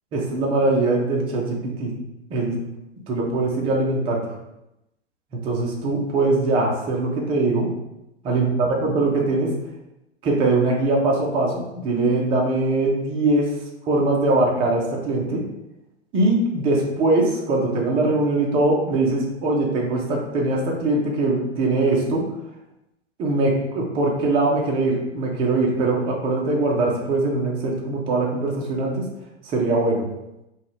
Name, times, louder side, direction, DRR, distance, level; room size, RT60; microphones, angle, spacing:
voice 1, 0.1-1.9 2.3-2.5 3.1-4.2 5.4-7.7 8.2-8.5 8.8-9.5 10.2-13.5 13.9-15.4 16.1-22.2 23.2-29.1 29.5-30.0, right 2 dB, 15° right, -2 dB, 0.4 m, -21 dB
3.7 x 2.3 x 3.0 m, 0.90 s
figure-of-eight pair, 105°, 35 cm